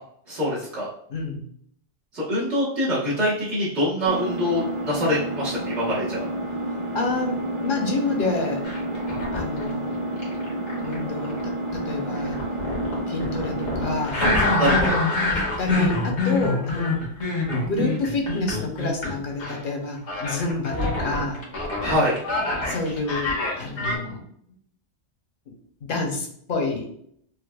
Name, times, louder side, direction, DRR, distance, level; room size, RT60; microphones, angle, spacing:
voice 1, 0.3-0.9 2.1-6.3 14.2-14.3 14.6-15.0 21.8-22.2, equal, 75° right, -9 dB, 1.4 m, -24 dB
voice 2, 1.1-1.4 6.7-8.7 9.3-10.1 10.8-12.4 13.1-14.3 15.3-17.0 17.6-21.4 22.6-24.2 25.8-26.9, left 3 dB, 55° left, 1 dB, 0.8 m, -28 dB
Engine, 4.1-14.1, right 1 dB, 50° right, 0.4 m, -30 dB
sound 1, 8.6-9.7 10.2-19.1 19.4-19.6 20.1-24.0, left 2 dB, 80° left, 1.3 m, -25 dB
4.6 x 2.2 x 2.2 m, 0.66 s
omnidirectional pair, 1.2 m